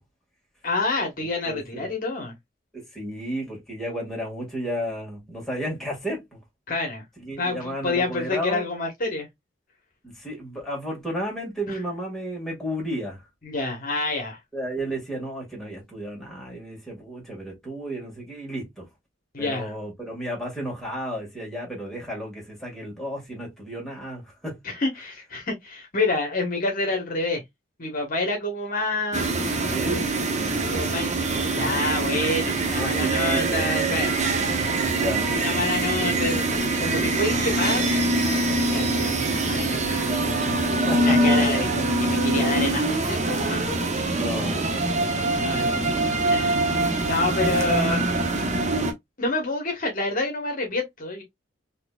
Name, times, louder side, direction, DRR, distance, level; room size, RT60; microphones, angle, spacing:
voice 1, 0.6-2.3 6.7-7.0 7.4-9.3 11.7-11.8 13.4-14.4 19.3-19.7 24.6-27.4 27.8-29.5 30.7-34.2 35.3-40.6 40.9-43.7 44.7-45.0 45.3-48.2 49.2-51.2, left 2 dB, 45° left, 1.1 m, -28 dB
voice 2, 1.5-1.9 2.7-6.4 7.3-8.6 10.0-13.2 14.5-18.8 19.4-24.6 29.7-30.1 32.7-33.6 34.9-35.3 40.4-41.5 44.1-45.1 45.6-46.0, equal, ahead, 1.8 m, -33 dB
sound 1, 29.1-48.9, right 2 dB, 35° right, 0.7 m, -24 dB
4.1 x 2.9 x 2.3 m
head